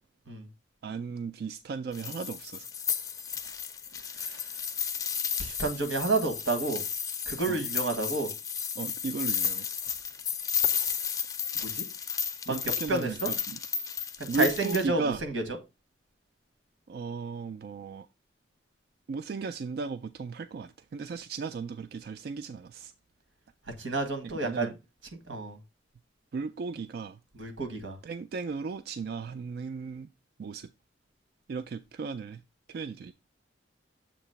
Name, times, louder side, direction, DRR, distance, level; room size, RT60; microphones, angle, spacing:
voice 1, 0.8-2.7 3.4-3.5 7.5-7.6 8.8-9.7 12.5-13.6 14.3-15.2 16.9-18.1 19.1-22.9 24.2-24.7 26.3-27.2 28.0-30.1 30.4-30.7 31.5-32.4 32.7-33.1, right 4 dB, 55° right, 0.3 m, -35 dB
sound 1, 1.9-14.8, left 7 dB, 20° left, 0.5 m, -33 dB
voice 2, 5.4-6.8 7.3-8.3 11.6-11.8 12.5-12.6 12.9-13.3 14.2-15.4 23.8-24.7 25.3-25.6 27.3-28.0, right 3 dB, 90° right, 1.5 m, -30 dB
7.2 x 3.0 x 5.6 m
head